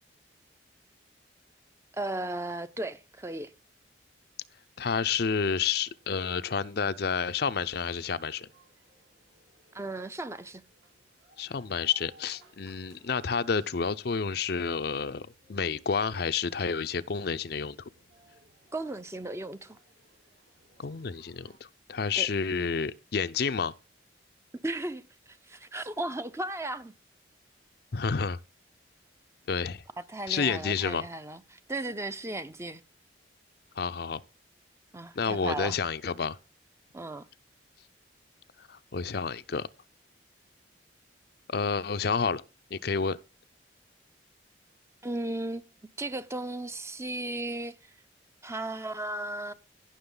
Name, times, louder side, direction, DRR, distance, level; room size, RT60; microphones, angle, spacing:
voice 1, 1.9-3.5 9.7-10.6 18.7-19.8 22.2-22.3 24.6-26.9 30.0-32.8 34.9-35.8 36.9-37.3 45.0-45.7 46.0-47.9 48.4-49.5, right 2 dB, 15° right, 0.6 m, -35 dB
voice 2, 4.8-8.5 11.4-17.8 20.8-23.7 27.9-28.4 29.5-29.8 30.3-31.1 33.8-34.2 35.2-36.4 38.6-39.7 41.5-42.4 42.7-43.2, left 5 dB, 55° left, 0.5 m, -30 dB
sound 1, 5.2-21.6, right 1 dB, 75° right, 4.7 m, -64 dB
16.5 x 6.2 x 3.9 m
head